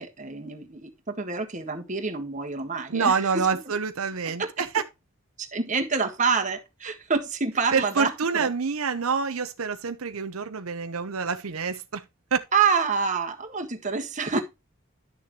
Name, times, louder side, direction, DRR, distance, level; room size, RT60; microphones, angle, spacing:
voice 1, 0.0-3.1 4.3-4.5 5.4-8.5 12.5-14.4, right 5 dB, 35° right, 1.5 m, -27 dB
voice 2, 2.9-4.8 7.7-12.0 12.3-12.4, right 5 dB, 85° right, 0.8 m, -27 dB
11.0 x 6.7 x 3.1 m
head